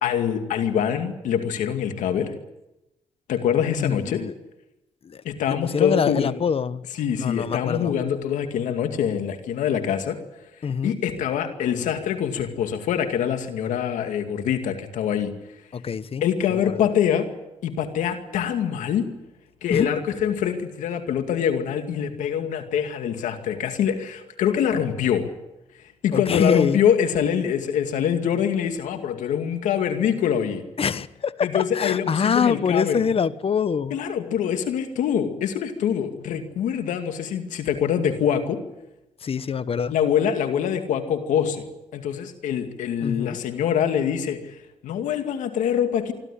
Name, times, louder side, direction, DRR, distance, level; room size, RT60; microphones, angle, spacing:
voice 1, 0.0-2.3 3.3-4.2 5.2-6.4 7.0-10.2 10.8-15.3 16.2-17.3 17.6-19.1 19.6-25.3 26.0-30.6 31.4-33.0 33.9-38.6 39.9-41.7 41.9-44.6 44.8-46.1, left 8 dB, 85° left, 7 dB, 2.3 m, -24 dB
voice 2, 3.8-4.3 5.0-5.2 5.5-6.8 7.2-8.0 10.6-11.0 15.7-16.2 16.5-16.8 19.7-19.9 26.1-26.8 30.8-34.0 39.2-39.9 43.0-43.4, left 6 dB, 50° left, 16 dB, 1.1 m, -25 dB
26.0 x 12.5 x 10.0 m, 0.96 s
cardioid pair, 65°, 13 cm